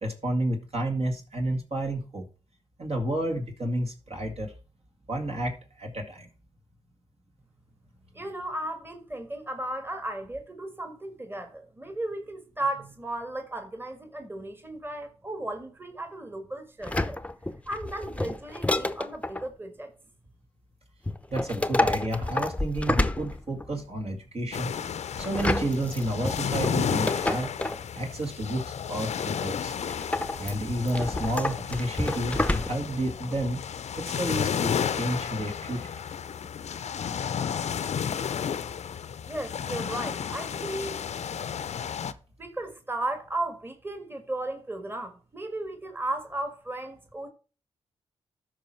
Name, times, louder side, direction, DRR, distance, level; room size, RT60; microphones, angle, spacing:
voice 1, 0.0-2.3 2.8-4.5 5.1-6.3 21.3-24.7 25.2-27.5 27.9-29.7 30.4-33.6 34.0-36.0, right 1 dB, 55° right, 2.1 m, -31 dB
voice 2, 8.1-17.2 17.7-19.9 39.3-41.0 42.4-47.3, right 1 dB, 20° right, 1.7 m, -35 dB
sound 1, 16.8-19.5 21.1-23.8 25.2-27.9 29.9-33.0 33.3-33.4, left 2 dB, 10° left, 0.7 m, -29 dB
sound 2, 24.5-42.1, left 8 dB, 65° left, 0.6 m, -32 dB
12.5 x 5.0 x 4.5 m
supercardioid pair, 40°, 12 cm